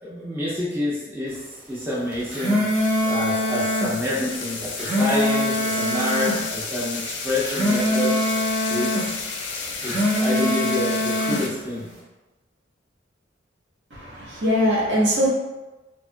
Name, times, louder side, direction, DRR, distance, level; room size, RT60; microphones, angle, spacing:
voice 1, 0.0-1.4 1.7-2.6 3.0-8.1 8.7-9.1 9.8-11.9, left 1 dB, 10° right, -8 dB, 0.5 m, -28 dB
sound 1, 2.1-3.9 4.6-6.4 7.3-9.1 9.7-11.4, equal, 40° right, 0.9 m, -23 dB
sound 2, 2.7-11.5, left 4 dB, 65° left, 0.4 m, -33 dB
voice 2, 13.9-15.3, equal, 65° right, -5 dB, 0.8 m, -21 dB
2.8 x 2.3 x 2.5 m, 1.1 s
head